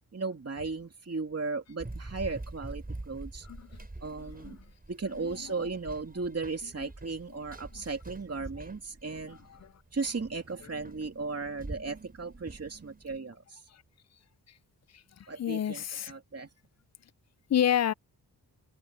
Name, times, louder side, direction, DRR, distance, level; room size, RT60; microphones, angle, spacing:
voice 1, 0.1-3.5 4.0-4.6 4.9-9.4 9.9-13.6 15.3-16.5, right 4 dB, 35° right, 2.7 m, -36 dB
Run, 1.8-13.2, right 2 dB, 20° right, 6.8 m, -45 dB
voice 2, 4.2-4.6 5.2-5.3 7.8-7.9 9.3-9.7 14.9-15.0 15.4-16.1 17.5-17.9, left 10 dB, 40° left, 0.4 m, -30 dB
open air
cardioid pair, 65°, 41 cm